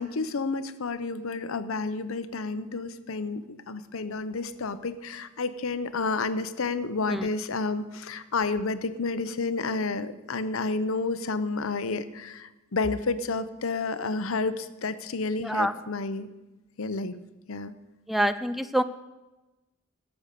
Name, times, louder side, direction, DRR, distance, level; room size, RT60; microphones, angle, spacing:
voice 1, 0.0-16.3 16.8-17.2 17.5-17.7, left 3 dB, 70° left, 12 dB, 0.7 m, -30 dB
voice 2, 18.1-18.8, right 1 dB, ahead, 12 dB, 0.3 m, -25 dB
16.5 x 7.1 x 6.6 m, 1.1 s
head